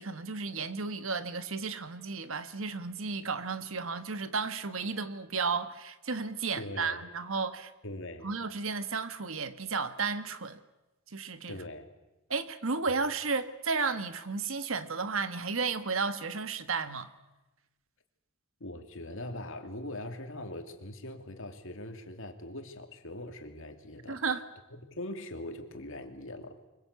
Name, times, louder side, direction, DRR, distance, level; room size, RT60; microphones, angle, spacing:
voice 1, 0.0-7.7 8.2-10.6 11.1-11.6 12.3-17.1 24.1-24.4, right 4 dB, 65° right, 1.4 m, -33 dB
voice 2, 6.5-7.0 7.8-8.3 11.5-11.9 13.0-13.1 18.6-24.2 24.7-26.6, left 1 dB, 65° left, 2.8 m, -41 dB
24.5 x 22.5 x 8.3 m
head